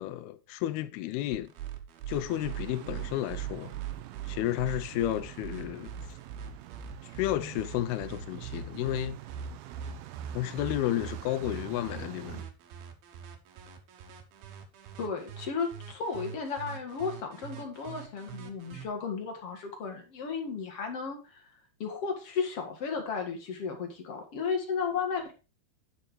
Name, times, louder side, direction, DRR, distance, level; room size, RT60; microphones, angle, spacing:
voice 1, 0.0-1.5 2.1-3.7 4.3-5.9 7.0-9.2 10.3-12.5, left 14 dB, 80° left, 2.3 m, -32 dB
sound 1, 1.3-18.8, right 9 dB, 65° right, 2.9 m, -42 dB
sound 2, 2.3-12.5, right 15 dB, 80° right, 2.1 m, -46 dB
voice 2, 15.0-21.4 21.8-25.3, left 5 dB, 45° left, 2.1 m, -34 dB
10.5 x 6.1 x 4.8 m
omnidirectional pair, 5.1 m